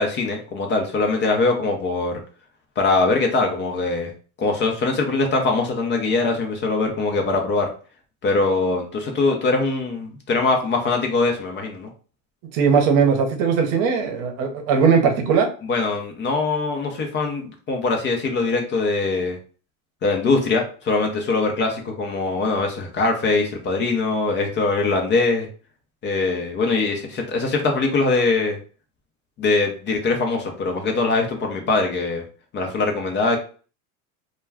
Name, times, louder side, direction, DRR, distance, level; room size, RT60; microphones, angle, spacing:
voice 1, 0.0-2.2 2.8-4.1 4.4-7.7 8.2-11.9 15.6-19.4 20.0-25.5 26.0-28.6 29.4-32.2 32.5-33.4, left 3 dB, 25° left, 3 dB, 0.5 m, -22 dB
voice 2, 12.5-15.5, right 6 dB, 50° right, 5 dB, 0.8 m, -19 dB
2.2 x 2.2 x 3.4 m, 0.40 s
hypercardioid pair, 105°, 42 cm